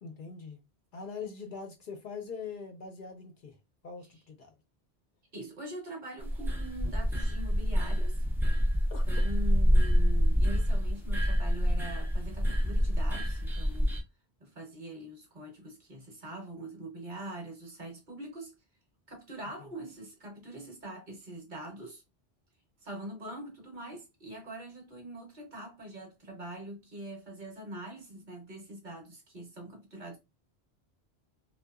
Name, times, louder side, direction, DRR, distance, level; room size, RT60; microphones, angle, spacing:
voice 1, 0.0-0.6 0.9-3.6 3.8-4.5 8.9-9.0 19.6-19.7, left 5 dB, 60° left, 0.7 m, -42 dB
voice 2, 5.3-8.2 9.0-14.0 14.4-18.5 19.1-22.0 22.8-30.2, right 1 dB, 50° right, 1.0 m, -43 dB
sound 1, 6.2-14.0, equal, 5° right, 0.3 m, -27 dB
2.7 x 2.2 x 2.3 m
omnidirectional pair, 1.1 m